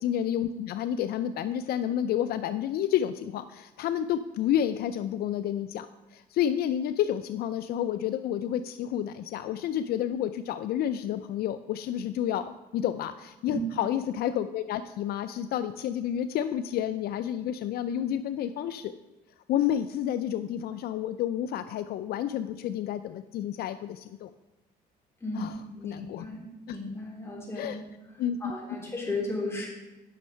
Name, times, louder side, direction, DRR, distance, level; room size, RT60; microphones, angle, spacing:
voice 1, 0.0-18.9 19.5-24.3 25.3-26.3 26.7-26.8 27.5-27.8 28.2-28.5, left 10 dB, 65° left, 11 dB, 0.4 m, -30 dB
voice 2, 25.2-26.4 26.7-27.8 28.4-29.7, left 2 dB, 15° left, -3 dB, 3.4 m, -35 dB
9.1 x 6.4 x 5.6 m, 1.1 s
cardioid pair, 110°, 17 cm